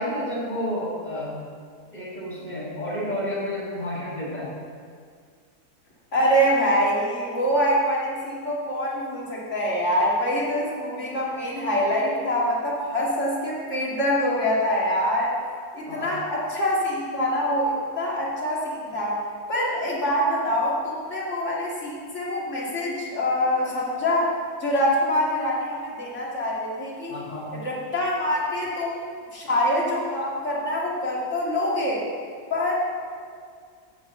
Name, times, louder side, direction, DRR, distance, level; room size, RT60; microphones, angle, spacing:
voice 1, 0.0-1.4 1.9-4.5 15.9-16.1 27.1-27.6, left 1 dB, 25° left, -10 dB, 2.1 m, -30 dB
voice 2, 6.1-15.3 15.7-19.2 19.5-24.3 24.6-27.1 27.5-32.0 32.5-32.7, equal, 45° left, -5 dB, 2.6 m, -25 dB
9.3 x 5.8 x 7.7 m, 2.1 s
omnidirectional pair, 1.8 m